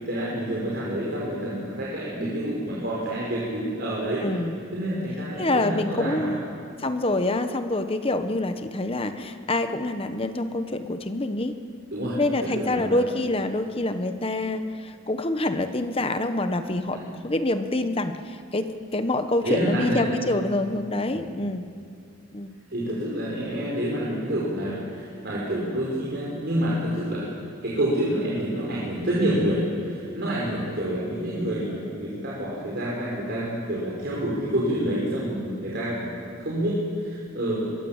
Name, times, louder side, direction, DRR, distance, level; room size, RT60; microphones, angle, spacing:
voice 1, 0.0-4.2 4.7-6.3 11.9-13.0 16.9-17.1 19.4-20.1 21.1-21.3 22.7-27.3 27.6-37.6, right 1 dB, 50° right, -6 dB, 5.0 m, -28 dB
voice 2, 4.2-4.6 5.4-6.5 6.8-11.5 12.2-21.6 22.3-22.5, left 2 dB, 25° left, 8 dB, 1.1 m, -26 dB
24.5 x 22.5 x 7.4 m, 2.3 s
head